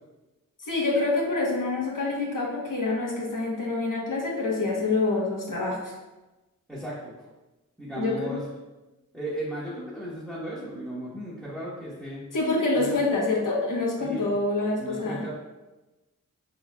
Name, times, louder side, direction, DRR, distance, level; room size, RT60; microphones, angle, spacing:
voice 1, 0.6-5.9 8.0-8.3 12.3-15.2, left 3 dB, 75° left, -3 dB, 1.0 m, -26 dB
voice 2, 6.7-7.1 7.8-8.4 9.1-12.2 12.7-13.0 14.0-14.3 14.8-15.3, right 1 dB, ahead, -9 dB, 0.9 m, -35 dB
4.7 x 2.9 x 2.2 m, 1.1 s
wide cardioid pair, 75°, 33 cm